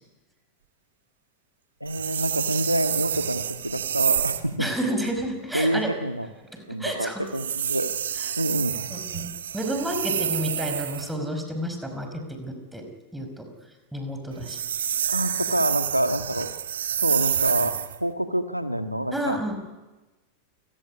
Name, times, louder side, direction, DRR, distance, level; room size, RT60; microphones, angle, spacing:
voice 1, 1.8-4.7 5.5-6.3 6.7-7.9 8.4-8.8 15.1-16.5 16.9-17.7 18.0-19.4, equal, 90° right, 8 dB, 1.7 m, -27 dB
sound 1, 1.9-4.5 7.3-11.1 14.3-18.0, right 9 dB, 65° right, 1.4 m, -28 dB
voice 2, 4.6-5.9 6.5-7.2 8.2-8.3 8.9-12.9 13.1-13.5 13.9-14.6 19.1-19.7, right 1 dB, 5° right, 5 dB, 5.2 m, -30 dB
28.5 x 17.5 x 9.9 m, 1.2 s
figure-of-eight pair, 90°, 0 cm